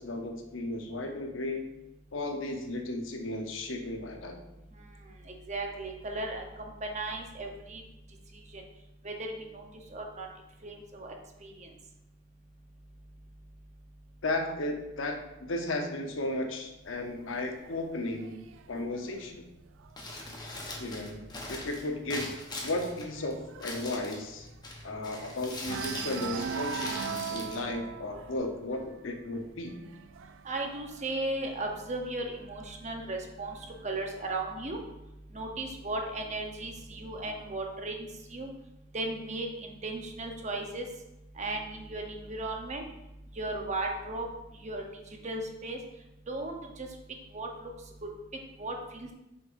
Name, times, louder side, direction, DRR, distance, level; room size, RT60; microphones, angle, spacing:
voice 1, 0.0-1.6 2.1-4.4 14.2-18.4 18.7-19.4 20.8-22.3 22.6-24.5 24.8-29.7, left 2 dB, 80° left, 4 dB, 0.8 m, -35 dB
voice 2, 4.7-7.8 8.3-8.6 9.0-10.3 10.6-11.7 30.4-34.9 35.3-38.5 38.9-41.0 41.3-42.8 43.3-49.1, right 2 dB, 35° right, 2 dB, 0.8 m, -37 dB
sound 1, 16.9-20.5 20.9-21.2 21.5-21.6 22.0-25.2 25.6-32.1 33.0-34.0, right 6 dB, 75° right, 0.3 m, -41 dB
Crumpling crinkling, 19.8-28.4, left 2 dB, 20° left, 0.9 m, -42 dB
6.6 x 5.5 x 2.6 m, 0.92 s
head